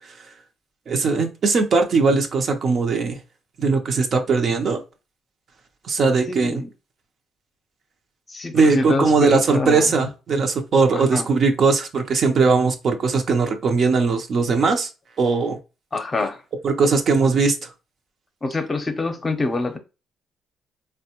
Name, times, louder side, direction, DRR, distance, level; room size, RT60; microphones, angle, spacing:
voice 1, 0.9-3.2 3.6-4.8 5.9-6.6 8.5-14.9 15.2-15.6 16.6-17.6, right 4 dB, 55° right, 0.6 m, -19 dB
voice 2, 6.3-6.7 8.3-9.9 10.9-11.2 15.9-16.4 18.4-19.8, left 3 dB, 30° left, 0.6 m, -25 dB
3.4 x 2.2 x 2.8 m
cardioid pair, 90°, 0 cm